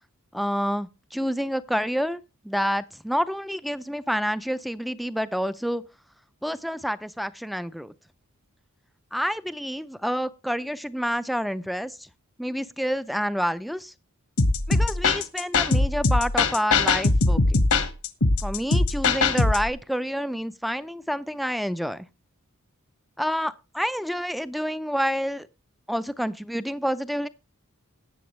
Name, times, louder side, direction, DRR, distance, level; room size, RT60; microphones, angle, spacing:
voice 1, 0.3-5.8 6.4-7.9 9.1-12.1 12.4-13.9 14.7-17.7 18.4-22.1 23.2-25.5 25.9-27.3, equal, ahead, 0.5 m, -28 dB
sound 1, 14.4-19.7, left 3 dB, 80° left, 1.3 m, -21 dB
18.0 x 7.0 x 3.2 m
head